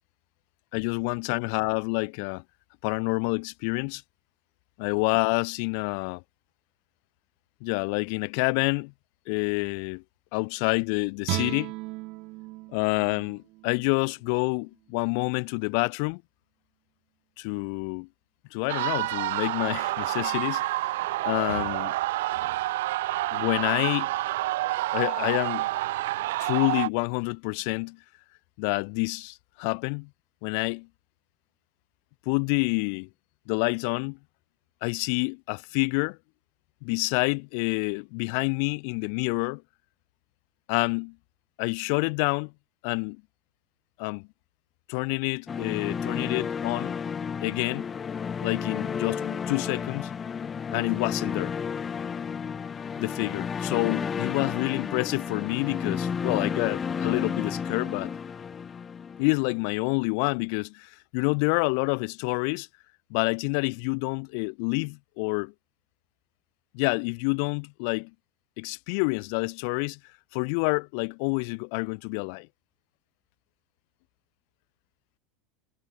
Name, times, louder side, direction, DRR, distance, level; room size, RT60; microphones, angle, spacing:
voice 1, 0.7-2.4 2.8-4.0 4.8-6.2 7.6-8.9 9.3-10.0 10.3-11.7 12.7-16.2 17.4-18.1 18.5-20.6 21.2-21.9 23.3-24.1 24.9-25.7 26.4-28.0 28.6-30.1 30.4-30.9 32.2-33.1 33.5-34.2 34.8-36.2 36.8-39.6 40.7-41.1 41.6-42.5 42.8-43.2 44.0-44.3 44.9-46.9 47.4-47.8 48.4-50.1 50.7-51.5 53.0-58.1 59.2-62.7 63.1-65.5 66.7-68.1 68.6-70.0 70.3-72.5, left 39 dB, 55° left, 1.7 m, -28 dB
Guitar, 11.2-14.4 14.8-15.0, right 23 dB, 45° right, 0.8 m, -36 dB
sound 1, 18.7-26.9, right 17 dB, 80° right, 0.6 m, -28 dB
sound 2, 45.5-59.6, left 6 dB, 15° left, 0.5 m, -32 dB
supercardioid pair, 170°, 0 cm